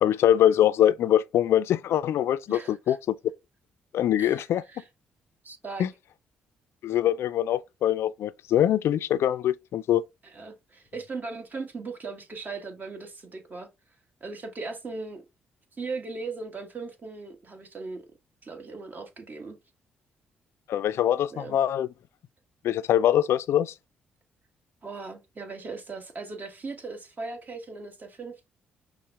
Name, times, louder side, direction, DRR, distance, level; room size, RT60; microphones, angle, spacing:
voice 1, 0.0-3.2 3.9-4.6 5.8-5.9 6.8-10.0 20.7-21.9 22.6-23.7, left 11 dB, 65° left, 0.3 m, -23 dB
voice 2, 2.5-3.0 4.2-4.8 5.4-5.9 10.2-13.7 14.2-15.2 15.7-18.0 18.4-19.6 21.3-21.6 24.8-28.5, right 3 dB, 40° right, 1.2 m, -38 dB
5.5 x 2.1 x 3.4 m
hypercardioid pair, 45°, 5 cm